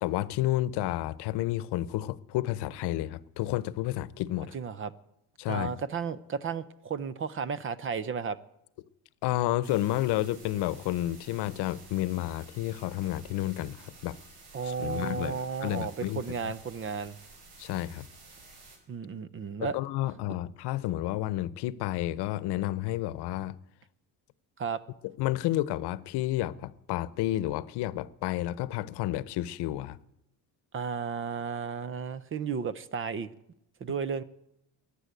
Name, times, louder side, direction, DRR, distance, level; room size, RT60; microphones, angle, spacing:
voice 1, 0.0-4.5 5.4-5.7 9.2-14.2 14.6-16.2 17.6-18.0 19.6-23.5 25.2-30.0, left 15 dB, 85° left, 0.9 m, -31 dB
voice 2, 4.5-4.9 5.5-8.4 14.5-17.2 18.9-19.8 24.6-24.8 30.7-33.3 33.8-34.2, right 6 dB, 30° right, 0.6 m, -33 dB
sound 1, 9.6-18.8, right 3 dB, 75° right, 4.4 m, -52 dB
15.0 x 9.9 x 9.1 m
cardioid pair, 165°, 40 cm